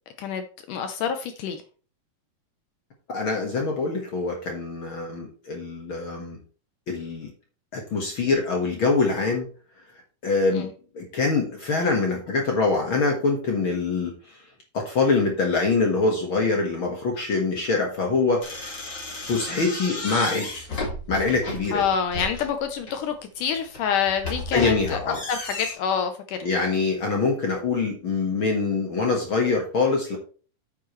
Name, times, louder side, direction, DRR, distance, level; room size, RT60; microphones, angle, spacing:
voice 1, 0.2-1.6 10.5-10.7 21.7-26.5, left 7 dB, 75° left, 7 dB, 2.0 m, -27 dB
voice 2, 3.1-6.4 6.9-7.3 7.7-9.5 10.2-10.7 10.9-14.4 14.7-18.7 19.3-20.7 21.1-21.8 24.5-25.2 26.4-30.2, left 4 dB, 55° left, 1 dB, 1.4 m, -24 dB
sound 1, 18.4-23.0 23.6-25.7, left 2 dB, 30° left, 3.0 m, -33 dB
8.9 x 8.3 x 3.1 m, 0.38 s
omnidirectional pair, 4.4 m